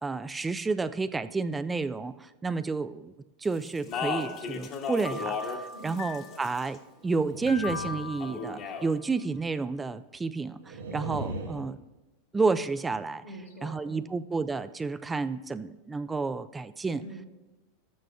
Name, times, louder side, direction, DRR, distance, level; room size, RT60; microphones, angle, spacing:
voice 1, 0.0-3.1 3.4-6.8 7.0-11.8 12.3-13.2 13.6-17.0, right 4 dB, 15° right, 12 dB, 0.3 m, -30 dB
Speech, 3.7-5.6 5.9-6.8 8.2-8.9, left 5 dB, 40° left, 1.4 m, -34 dB
sound 1, 3.9-4.8 5.0-6.5 7.5-9.1, left 4 dB, 70° left, 1.5 m, -40 dB
voice 2, 5.7-6.5 13.2-14.2 17.0-17.3, equal, 85° left, -3 dB, 1.9 m, -45 dB
sound 2, 7.0-8.8 10.6-11.6, right 2 dB, 90° right, 1.1 m, -38 dB
13.5 x 9.3 x 2.3 m, 1.1 s
hypercardioid pair, 95°, 0 cm